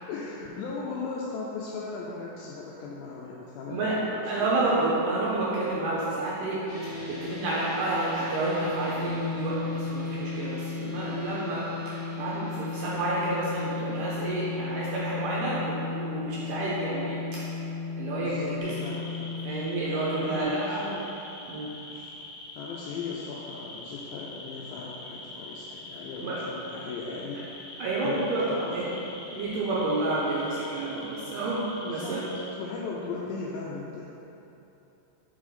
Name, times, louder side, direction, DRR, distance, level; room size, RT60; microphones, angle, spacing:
voice 1, 0.1-4.7 18.2-19.6 20.1-21.1 21.9-22.2 22.6-27.4 28.0-29.0 31.8-32.2 32.5-34.1, left 4 dB, 85° left, -3 dB, 2.1 m, -37 dB
voice 2, 3.7-4.0 4.3-6.6 7.1-17.4 18.0-18.7 19.4-20.8 21.5-21.7 26.2-26.4 27.8-28.9 29.3-31.6 31.9-32.2, right 2 dB, 75° right, -7 dB, 2.0 m, -29 dB
sound 1, 6.7-20.4, left 4 dB, 50° left, 1.4 m, -35 dB
sound 2, 18.6-32.5, left 2 dB, 70° left, 2.2 m, -44 dB
6.1 x 4.8 x 4.2 m, 2.9 s
omnidirectional pair, 4.5 m